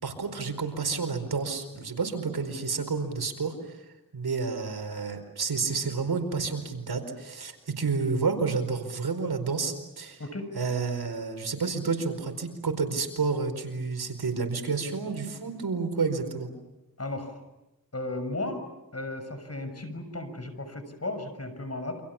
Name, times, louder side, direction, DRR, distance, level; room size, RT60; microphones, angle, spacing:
voice 1, 0.0-3.5 4.1-10.2 10.5-16.5, right 4 dB, 80° right, 6 dB, 4.6 m, -30 dB
voice 2, 17.0-17.4 17.9-18.6 18.9-22.0, left 2 dB, 40° left, 9 dB, 6.3 m, -35 dB
29.0 x 26.5 x 7.3 m, 0.96 s
cardioid pair, 55°, 37 cm